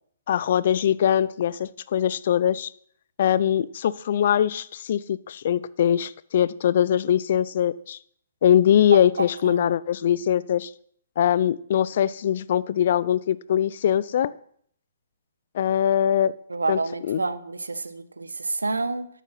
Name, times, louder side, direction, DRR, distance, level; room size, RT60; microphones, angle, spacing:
voice 1, 0.3-2.7 3.2-8.0 8.4-10.7 11.2-14.3 15.5-16.3 16.7-17.2, left 10 dB, 55° left, 20 dB, 0.5 m, -22 dB
voice 2, 9.2-9.6 16.5-19.1, right 3 dB, 85° right, 13 dB, 1.0 m, -29 dB
12.5 x 8.3 x 5.7 m, 0.63 s
figure-of-eight pair, 130°, 0 cm